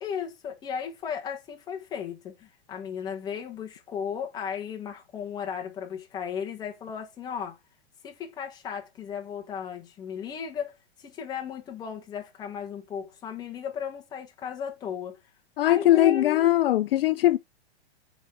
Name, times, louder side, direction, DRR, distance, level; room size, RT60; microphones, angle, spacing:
voice 1, 0.0-7.5 8.0-10.7 11.0-15.2 15.6-16.5, left 7 dB, 10° left, 0.9 m, -35 dB
voice 2, 15.6-17.4, left 14 dB, 60° left, 0.4 m, -20 dB
7.3 x 3.7 x 4.6 m
hypercardioid pair, 165°, 33 cm